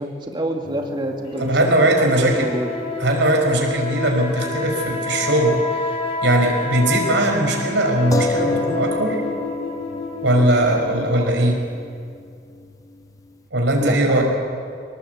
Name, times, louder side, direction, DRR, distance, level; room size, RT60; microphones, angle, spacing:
voice 1, 0.0-2.7 13.8-14.2, right 1 dB, 25° right, 1 dB, 2.5 m, -27 dB
sound 1, 0.6-4.5 4.8-4.9 8.1-13.3, left 3 dB, 20° left, 0.7 m, -31 dB
sound 2, 1.3-11.0, left 3 dB, 35° left, 3.8 m, -29 dB
voice 2, 1.4-2.5 3.0-5.6 6.2-9.2 10.2-11.6 13.5-14.2, right 1 dB, 90° right, 2 dB, 5.0 m, -19 dB
25.0 x 19.0 x 8.1 m, 2.3 s
head